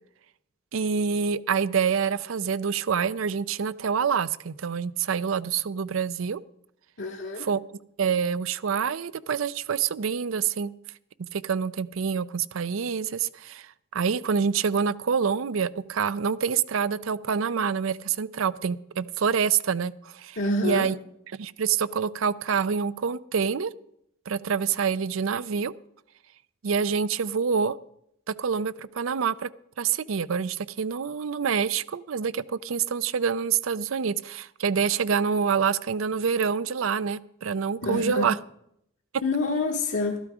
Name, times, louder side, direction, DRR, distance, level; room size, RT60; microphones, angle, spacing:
voice 1, 0.7-6.4 7.4-7.6 8.0-10.7 11.2-20.4 20.6-20.9 21.3-23.7 24.3-25.7 26.6-27.7 28.3-29.5 29.8-38.4, right 6 dB, 85° right, 17 dB, 0.5 m, -26 dB
voice 2, 7.0-7.5 20.4-20.9 37.8-38.3 39.2-40.2, left 2 dB, 70° left, -1 dB, 1.1 m, -27 dB
13.0 x 12.0 x 4.8 m, 0.74 s
head